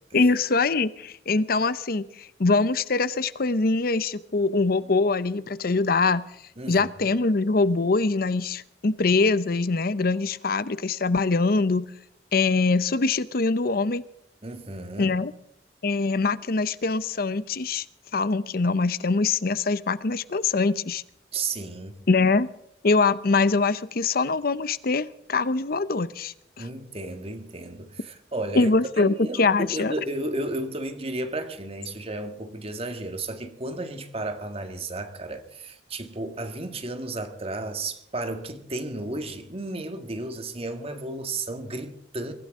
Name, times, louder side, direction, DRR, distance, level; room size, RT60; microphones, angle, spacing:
voice 1, 0.1-6.2 6.7-11.9 12.3-14.0 15.0-15.3 15.8-17.8 18.1-21.0 22.1-22.5 22.8-26.7 28.5-29.9, left 3 dB, 60° left, 0.7 m, -23 dB
voice 2, 6.6-7.1 14.4-15.1 21.3-22.0 26.6-28.7 29.0-42.3, right 2 dB, 35° right, 1.8 m, -33 dB
23.5 x 15.5 x 3.7 m
head